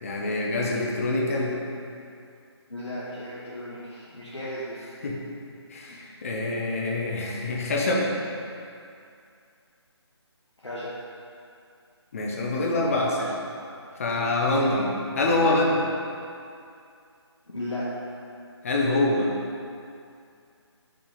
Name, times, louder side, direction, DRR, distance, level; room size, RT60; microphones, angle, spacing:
voice 1, 0.0-1.6 5.0-5.2 5.7-8.1 12.1-13.4 14.0-15.8 18.6-19.3, left 2 dB, 30° left, -2 dB, 0.9 m, -25 dB
voice 2, 2.7-4.8 10.6-10.9 17.5-17.9, left 1 dB, 75° left, -9 dB, 1.5 m, -35 dB
6.1 x 6.0 x 4.0 m, 2.5 s
figure-of-eight pair, 150°, 15 cm